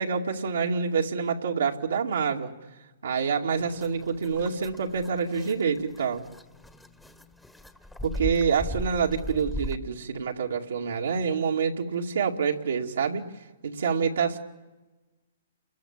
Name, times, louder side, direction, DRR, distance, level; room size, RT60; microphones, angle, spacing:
voice 1, 0.0-2.5 3.0-6.2 8.0-13.2 13.6-14.4, right 6 dB, 80° right, 0 dB, 2.2 m, -27 dB
sound 1, 3.5-9.8, left 1 dB, 5° left, 1.4 m, -38 dB
30.0 x 21.5 x 7.4 m, 1.2 s
hypercardioid pair, 125°, 0 cm